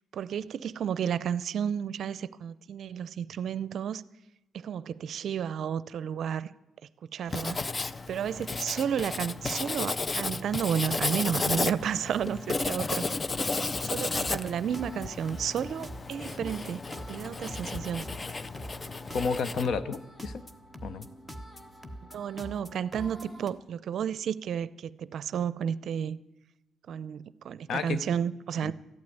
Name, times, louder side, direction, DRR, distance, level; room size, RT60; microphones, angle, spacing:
voice 1, 0.1-4.0 4.5-6.5 7.1-7.6 8.1-13.0 13.8-18.0 22.1-26.2 26.9-28.7, right 8 dB, 65° right, 0.5 m, -32 dB
Writing, 7.3-19.7, left 3 dB, 25° left, 0.5 m, -33 dB
sound 1, 13.7-23.5, equal, 10° left, 1.3 m, -45 dB
voice 2, 19.1-20.4 20.8-21.1 27.7-28.0 28.6-28.7, left 5 dB, 60° left, 0.9 m, -31 dB
13.5 x 8.7 x 9.3 m
cardioid pair, 90°, 0 cm